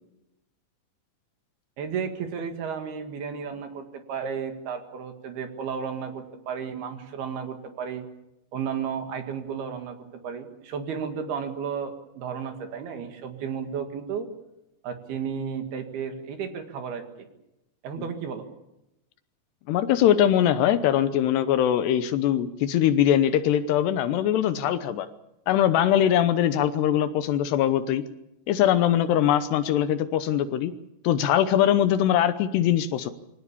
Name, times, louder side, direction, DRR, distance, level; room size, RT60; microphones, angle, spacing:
voice 1, 1.8-8.1 8.5-10.0 10.2-14.3 14.8-17.0 17.8-18.5, right 7 dB, 65° right, 6 dB, 3.6 m, -33 dB
voice 2, 19.7-25.1 25.5-28.0 28.5-30.7 31.0-33.1, left 10 dB, 75° left, 12 dB, 2.8 m, -22 dB
24.5 x 17.5 x 8.4 m, 0.88 s
omnidirectional pair, 5.2 m